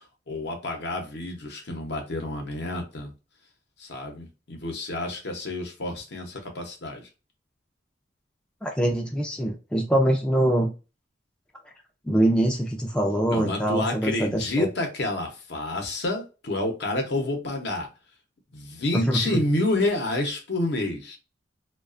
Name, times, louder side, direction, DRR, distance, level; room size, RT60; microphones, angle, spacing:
voice 1, 0.3-3.1 3.8-7.0 13.3-17.9 18.5-21.2, left 2 dB, 65° left, 0.7 m, -29 dB
voice 2, 8.6-10.7 12.1-14.7 18.9-19.4, right 1 dB, 5° left, 0.4 m, -24 dB
2.4 x 2.3 x 2.4 m
head